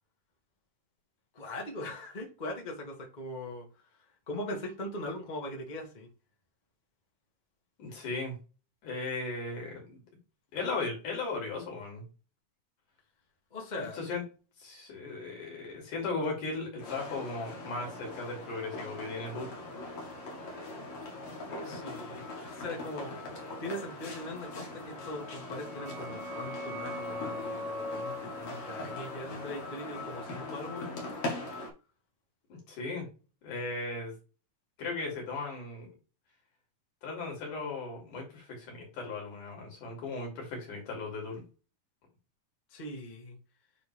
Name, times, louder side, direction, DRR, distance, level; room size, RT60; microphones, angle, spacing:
voice 1, 1.3-3.6 4.3-6.1 13.5-14.0 21.6-31.3 42.7-43.4, left 1 dB, 20° left, -1 dB, 1.2 m, -40 dB
voice 2, 7.8-8.3 8.8-10.0 10.5-12.0 13.8-14.2 14.6-19.5 32.5-33.0 33.4-34.1 34.8-35.9 37.0-41.4, left 3 dB, 65° left, -1 dB, 4.3 m, -37 dB
sound 1, 16.8-31.7, left 2 dB, 50° left, 2.5 m, -41 dB
sound 2, 25.2-30.6, left 1 dB, 35° right, 1.3 m, -42 dB
9.1 x 3.7 x 3.3 m, 0.32 s
omnidirectional pair, 3.9 m